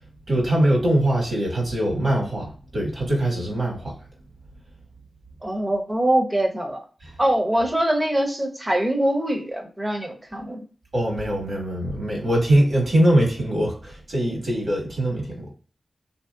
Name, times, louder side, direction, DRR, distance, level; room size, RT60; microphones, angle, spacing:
voice 1, 0.3-3.9 7.0-7.1 10.9-15.5, right 1 dB, 60° right, 1.5 m, -22 dB
voice 2, 5.4-6.8 7.2-10.6, right 1 dB, 25° right, 0.8 m, -23 dB
3.0 x 2.8 x 2.3 m
cardioid pair, 65°, 0 cm